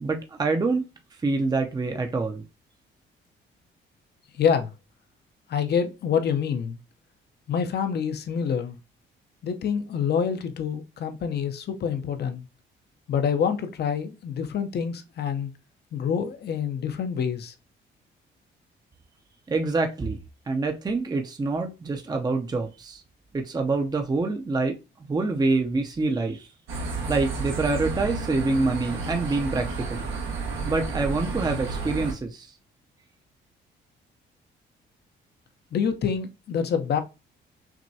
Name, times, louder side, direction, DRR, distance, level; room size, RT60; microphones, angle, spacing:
voice 1, 0.0-0.8 1.2-2.4 19.5-20.2 20.5-23.0 23.3-24.8 25.1-26.5 27.1-30.1 30.6-32.5, right 3 dB, 20° right, 0.6 m, -26 dB
voice 2, 4.4-4.7 5.5-6.8 7.5-8.8 9.4-12.4 13.1-15.5 15.9-17.5 35.7-37.0, left 7 dB, 55° left, 0.7 m, -26 dB
sound 1, 26.7-32.1, right 4 dB, 85° right, 1.3 m, -31 dB
6.0 x 2.2 x 2.7 m
cardioid pair, 90°, 20 cm